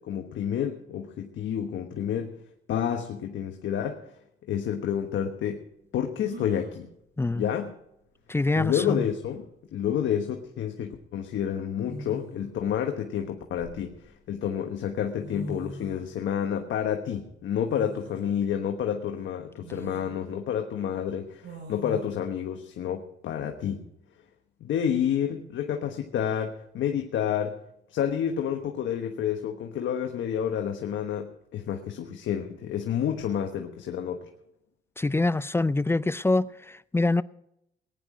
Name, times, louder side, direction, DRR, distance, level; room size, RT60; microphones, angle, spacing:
voice 1, 0.0-2.4 2.7-4.1 4.5-5.6 5.9-6.9 7.3-7.7 8.5-9.4 9.7-23.9 24.6-27.6 27.9-34.3, left 9 dB, 75° left, 1.3 m, -29 dB
sound 1, 6.2-6.7 8.2-8.3 8.7-9.2 10.5-10.7 11.8-12.6 13.2-14.3 14.9-15.0 15.2-16.1 17.7-18.3 18.8-18.9 19.6-20.1 21.4-22.1, right 1 dB, 60° right, 7.9 m, -42 dB
voice 2, 8.3-9.1 35.0-37.2, left 2 dB, 10° left, 0.4 m, -25 dB
19.5 x 10.0 x 5.0 m
cardioid pair, 90°, 20 cm